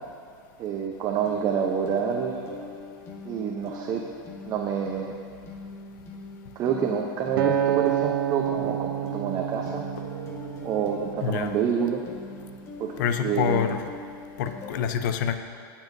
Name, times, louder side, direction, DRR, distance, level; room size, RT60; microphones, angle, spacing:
voice 1, 0.6-2.7 3.3-4.0 4.4-5.1 6.6-9.9 10.6-12.0 12.8-12.9 13.2-13.7, right 7 dB, 35° right, 1 dB, 0.8 m, -27 dB
sound 1, 1.2-14.7, left 2 dB, 25° left, 1.7 m, -42 dB
Acoustic guitar, 7.4-11.7 12.3-12.6, right 10 dB, 70° right, 0.7 m, -29 dB
voice 2, 11.2-11.5 13.0-13.8 14.4-15.4, left 8 dB, 60° left, 8 dB, 0.8 m, -26 dB
21.5 x 7.3 x 2.7 m, 2.3 s
supercardioid pair, 130°, 11 cm